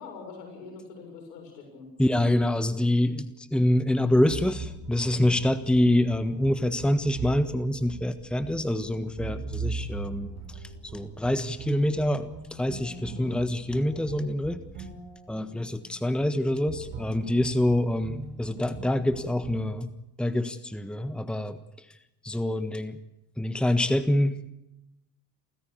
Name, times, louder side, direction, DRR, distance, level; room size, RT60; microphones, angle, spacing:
voice 1, 0.0-1.9 12.9-13.4, left 4 dB, 80° left, 2 dB, 7.1 m, -43 dB
voice 2, 2.0-10.3 10.9-14.6 15.3-19.9 20.2-21.6 22.2-23.0 23.4-24.5, left 1 dB, ahead, 12 dB, 1.4 m, -26 dB
sound 1, 4.3-19.6, right 4 dB, 65° right, 5.9 m, -40 dB
28.0 x 15.0 x 8.5 m, 0.89 s
hypercardioid pair, 55°, 48 cm